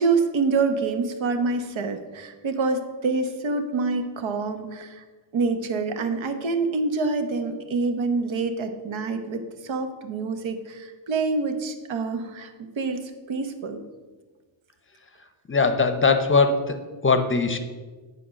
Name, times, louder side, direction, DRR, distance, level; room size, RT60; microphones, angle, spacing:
voice 1, 0.0-5.0 5.3-12.5 12.8-13.8, right 4 dB, 75° right, 7 dB, 1.1 m, -26 dB
voice 2, 15.5-17.6, left 4 dB, 25° left, 8 dB, 0.6 m, -21 dB
8.6 x 4.5 x 6.3 m, 1.3 s
wide cardioid pair, 130°, 46 cm